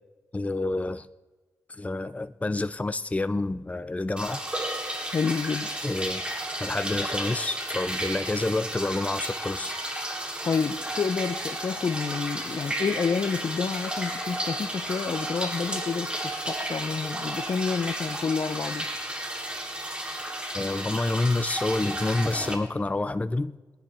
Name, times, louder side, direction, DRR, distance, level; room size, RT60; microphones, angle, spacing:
voice 1, 0.3-1.1 1.7-4.4 5.8-6.2 6.6-9.8 20.5-23.6, left 2 dB, 20° left, 0.6 m, -28 dB
sound 1, 4.2-22.5, right 1 dB, 15° right, 3.7 m, -33 dB
voice 2, 5.1-5.7 10.4-18.9, left 5 dB, 55° left, 0.8 m, -29 dB
23.5 x 10.5 x 3.6 m
supercardioid pair, 45°, 7 cm